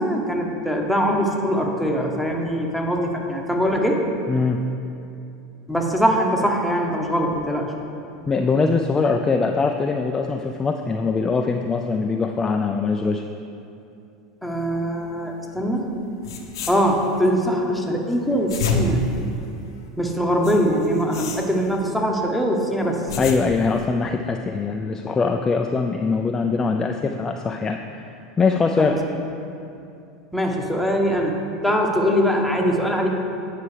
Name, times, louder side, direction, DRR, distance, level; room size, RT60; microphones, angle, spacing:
voice 1, 0.0-4.0 5.7-7.7 14.4-15.9 16.7-19.0 20.0-23.2 28.8-29.0 30.3-33.1, equal, ahead, 0 dB, 1.0 m, -22 dB
voice 2, 4.3-4.6 8.3-13.2 23.2-27.8 28.4-29.0, left 4 dB, 20° left, 4 dB, 0.3 m, -22 dB
sound 1, 15.9-16.0 16.2-17.3 18.2-19.9 20.4-22.0 22.8-23.8, left 3 dB, 80° left, 0.7 m, -29 dB
9.3 x 5.6 x 3.3 m, 2.7 s
hypercardioid pair, 95°, 2 cm